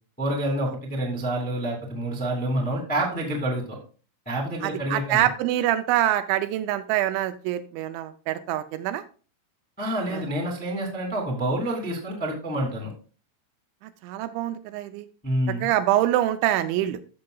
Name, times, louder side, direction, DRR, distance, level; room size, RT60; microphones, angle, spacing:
voice 1, 0.2-3.8 4.2-5.3 9.8-12.9 15.2-15.7, right 1 dB, 10° left, -1 dB, 0.5 m, -28 dB
voice 2, 4.6-9.0 10.1-10.2 14.0-15.1 15.6-17.0, right 13 dB, 80° right, 10 dB, 2.9 m, -25 dB
14.0 x 6.6 x 2.3 m, 0.38 s
omnidirectional pair, 5.5 m